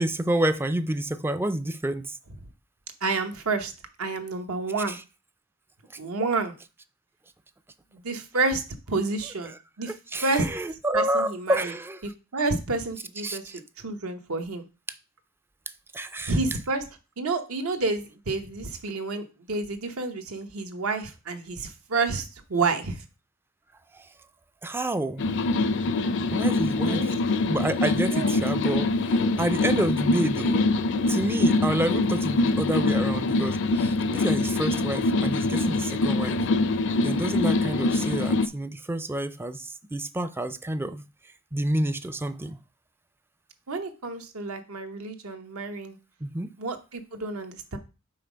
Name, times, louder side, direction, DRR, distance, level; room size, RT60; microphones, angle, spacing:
voice 1, 0.0-2.2 4.8-5.0 9.2-9.5 9.8-12.0 13.1-13.6 15.9-16.6 23.9-24.1 24.6-25.3 26.3-27.1 27.5-30.6 31.1-36.4 37.0-41.0 41.5-42.6 46.2-46.5, right 1 dB, 10° right, 0.3 m, -29 dB
voice 2, 3.0-3.7 4.0-5.0 6.0-6.5 7.9-9.9 10.2-10.5 10.9-11.7 12.0-13.4 13.8-14.6 16.3-16.8 17.2-23.0 26.9-27.1 28.1-28.3 43.7-46.0 46.6-47.8, right 3 dB, 75° right, 0.9 m, -29 dB
sound 1, 25.2-38.5, left 2 dB, 55° left, 0.5 m, -24 dB
5.7 x 4.0 x 5.0 m
head